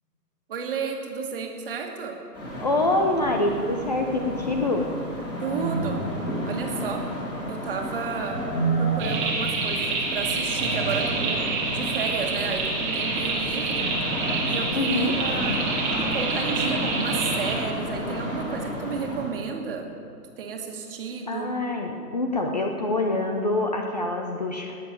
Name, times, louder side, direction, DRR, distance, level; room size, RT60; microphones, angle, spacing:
voice 1, 0.5-2.2 5.4-6.1 6.4-7.1 7.5-13.9 14.5-19.9 20.4-21.6, right 5 dB, 35° right, 2 dB, 1.9 m, -32 dB
sound 1, 2.3-19.3, right 1 dB, 10° left, 2.5 m, -31 dB
voice 2, 2.6-4.9 14.7-15.1 21.3-24.7, left 2 dB, 25° left, 3 dB, 0.7 m, -25 dB
sound 2, 9.0-17.6, right 3 dB, 15° right, 1.5 m, -28 dB
19.0 x 7.2 x 9.1 m, 2.4 s
hypercardioid pair, 155°, 48 cm